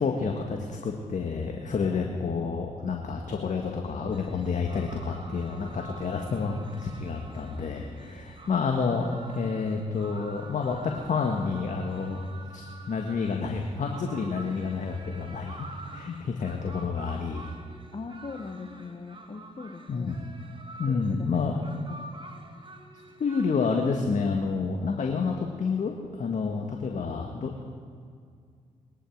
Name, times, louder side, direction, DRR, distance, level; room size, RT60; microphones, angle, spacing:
voice 1, 0.0-10.8 11.0-12.2 12.5-15.7 15.9-17.5 19.9-20.2 20.8-21.6 23.2-27.5, left 5 dB, 55° left, 2 dB, 1.5 m, -29 dB
sound 1, 4.1-24.0, right 2 dB, 35° right, 1.9 m, -47 dB
voice 2, 17.9-20.2 20.9-22.1 26.8-27.4, left 4 dB, 35° left, 4 dB, 1.3 m, -42 dB
20.5 x 11.0 x 4.6 m, 2.2 s
hypercardioid pair, 45°, 16 cm